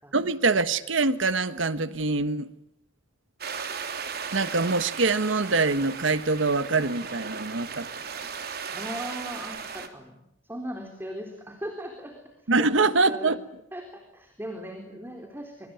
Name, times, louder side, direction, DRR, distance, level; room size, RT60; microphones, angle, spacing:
voice 1, 0.1-2.5 4.3-7.9 12.5-13.4, right 3 dB, 90° right, 1.4 m, -24 dB
sound 1, 3.4-9.9, right 6 dB, 55° right, 3.2 m, -36 dB
voice 2, 8.7-13.3 13.7-15.7, equal, 10° right, 3.9 m, -38 dB
25.5 x 25.0 x 9.2 m
head